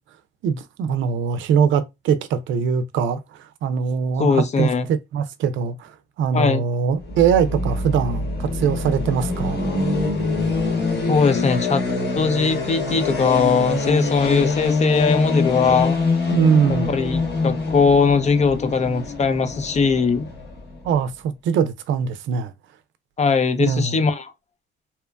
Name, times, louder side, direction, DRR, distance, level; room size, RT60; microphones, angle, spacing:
voice 1, 0.4-9.6 16.3-17.0 20.8-22.5 23.7-24.0, right 7 dB, 75° right, 0.4 m, -22 dB
voice 2, 4.2-4.9 6.3-6.6 11.1-11.8 12.2-16.0 16.9-20.3 23.2-24.3, left 5 dB, 35° left, 0.4 m, -20 dB
sound 1, 7.0-20.9, left 3 dB, 60° left, 1.3 m, -25 dB
2.9 x 2.1 x 2.2 m
cardioid pair, 90°, 20 cm